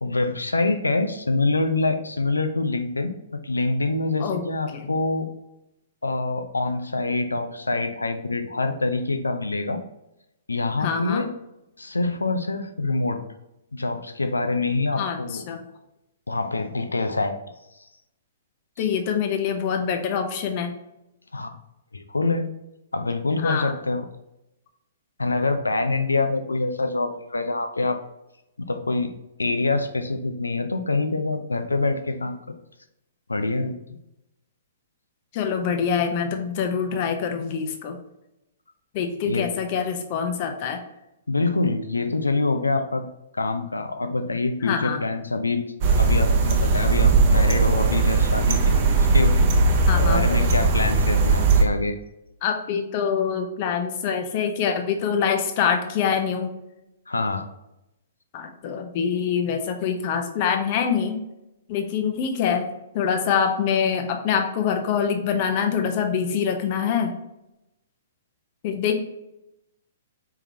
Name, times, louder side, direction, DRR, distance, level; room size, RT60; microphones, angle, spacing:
voice 1, 0.0-3.1 3.4-5.3 6.0-9.8 10.5-11.3 11.8-13.2 13.7-15.4 16.3-17.4 18.8-18.9 21.3-21.6 21.9-22.5 22.9-24.1 25.2-28.0 28.6-29.1 29.4-32.6 33.3-33.7 39.3-39.5 41.3-43.0 43.3-45.6 46.0-49.4 50.1-52.0 57.1-57.5, left 3 dB, 80° left, 8 dB, 0.6 m, -25 dB
voice 2, 10.8-11.3 14.9-15.6 18.8-20.7 23.3-23.7 35.3-38.0 38.9-40.8 44.6-45.0 49.9-50.3 52.4-56.5 58.3-61.2 61.7-62.7 62.9-67.1 68.6-69.0, left 7 dB, 40° left, 5 dB, 0.8 m, -25 dB
sound 1, 45.8-51.6, right 3 dB, 40° right, 0.8 m, -19 dB
4.5 x 3.8 x 2.8 m, 0.89 s
figure-of-eight pair, 115°, 0 cm